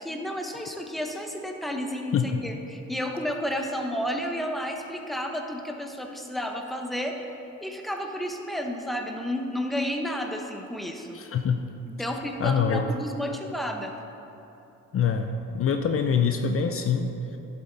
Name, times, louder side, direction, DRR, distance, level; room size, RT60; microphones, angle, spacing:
voice 1, 0.0-7.3 7.6-11.2 11.9-13.9, equal, ahead, 3 dB, 0.9 m, -31 dB
voice 2, 11.1-11.6 12.4-12.8 14.9-17.4, left 6 dB, 45° left, 6 dB, 0.6 m, -25 dB
11.0 x 7.3 x 4.0 m, 2.9 s
cardioid pair, 90°, 30 cm